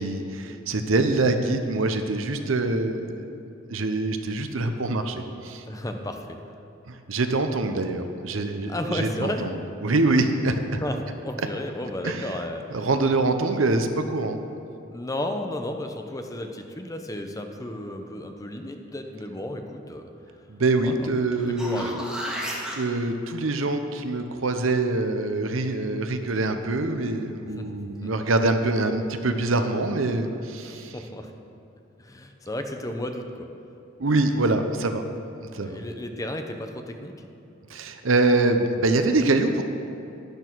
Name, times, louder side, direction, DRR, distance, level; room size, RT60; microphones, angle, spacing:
voice 1, 0.0-3.4 3.7-5.6 6.9-10.8 12.0-12.3 12.7-14.4 20.5-22.0 22.8-30.9 34.0-35.0 35.5-35.8 37.7-39.6, right 2 dB, 70° right, 7 dB, 0.8 m, -24 dB
voice 2, 5.6-6.4 8.7-9.5 10.8-11.0 11.2-12.9 14.9-20.1 20.9-21.1 21.6-22.1 27.6-28.1 30.6-31.3 32.0-33.5 35.6-37.1, left 1 dB, 15° left, 5 dB, 0.7 m, -33 dB
sound 1, 21.3-22.8 27.6-27.7, equal, 5° right, 1.8 m, -33 dB
12.0 x 10.5 x 4.6 m, 2.8 s
head